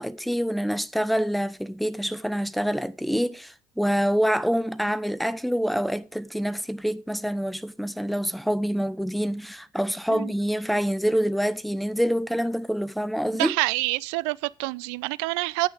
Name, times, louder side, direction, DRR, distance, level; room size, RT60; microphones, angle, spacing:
voice 1, 0.0-13.5, equal, ahead, 0.9 m, -26 dB
voice 2, 13.4-15.7, right 23 dB, 75° right, 0.4 m, -27 dB
18.0 x 6.3 x 3.5 m
hypercardioid pair, 55°, 15 cm